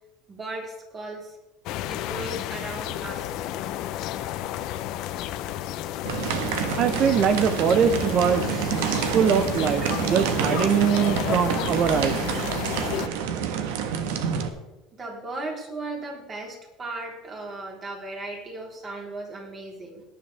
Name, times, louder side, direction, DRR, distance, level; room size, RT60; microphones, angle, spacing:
voice 1, 0.3-1.4 1.9-3.4 15.0-20.0, right 2 dB, 25° right, 0 dB, 3.7 m, -36 dB
sound 1, 1.7-13.1, left 12 dB, 60° left, 0.8 m, -32 dB
sound 2, 6.1-14.5, right 7 dB, 85° right, 1.4 m, -28 dB
voice 2, 6.8-8.7 9.1-12.5 12.8-12.9, right 7 dB, 40° right, 12 dB, 0.7 m, -23 dB
17.5 x 10.5 x 3.4 m, 1.0 s
cardioid pair, 135°, 0 cm